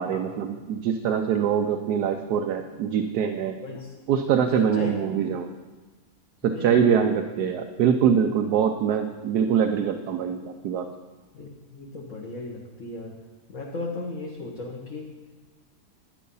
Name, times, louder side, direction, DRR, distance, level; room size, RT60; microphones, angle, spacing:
voice 1, 0.0-3.5 4.1-5.5 6.4-10.9, right 7 dB, 90° right, 5 dB, 1.3 m, -24 dB
voice 2, 4.5-4.9 6.4-6.9 11.3-13.1 13.5-15.1, left 2 dB, 55° left, -3 dB, 1.9 m, -36 dB
12.0 x 10.0 x 5.5 m, 1.2 s
omnidirectional pair, 1.7 m